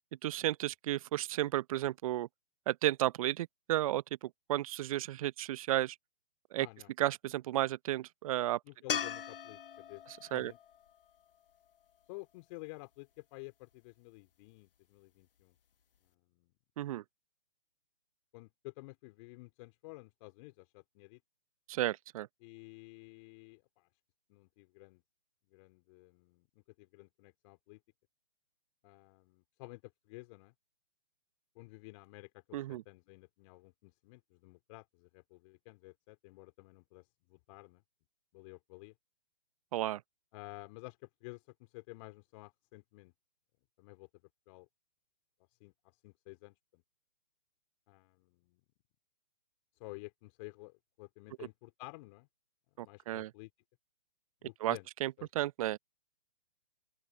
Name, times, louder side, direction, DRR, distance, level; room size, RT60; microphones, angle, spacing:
voice 1, 0.2-2.3 2.7-6.0 6.5-6.7 7.0-8.6 10.3-10.5 16.8-17.0 21.7-22.3 32.5-32.8 39.7-40.0 52.8-53.3 54.6-55.8, right 14 dB, 35° right, 0.8 m, -33 dB
voice 2, 6.6-6.9 8.7-10.0 10.3-10.6 12.1-15.5 16.3-16.5 18.3-21.2 22.4-23.9 24.3-25.0 25.5-26.5 26.8-27.8 28.8-30.5 31.5-37.8 38.3-38.9 40.3-43.1 43.8-44.1 44.5-44.7 45.6-46.8 47.9-48.6 49.8-52.3 52.8-53.5 54.4-54.9 55.2-55.3, left 25 dB, 30° left, 3.0 m, -52 dB
sound 1, 8.9-12.1 15.4-15.5, left 8 dB, 65° left, 1.1 m, -40 dB
open air
figure-of-eight pair, 130°, 30 cm